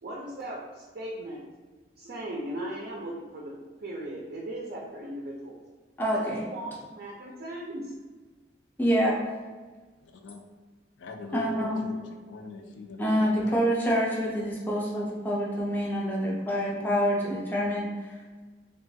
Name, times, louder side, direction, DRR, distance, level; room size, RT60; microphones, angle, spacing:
voice 1, 0.0-1.4 2.0-3.5 3.8-5.6 6.1-7.9, right 1 dB, 55° right, -2 dB, 0.4 m, -37 dB
voice 2, 6.0-6.4 8.8-9.3 11.3-11.8 13.0-18.4, equal, 10° left, -4 dB, 0.4 m, -27 dB
voice 3, 11.0-13.5, left 3 dB, 75° left, 3 dB, 0.4 m, -42 dB
3.0 x 2.3 x 2.6 m, 1.3 s
head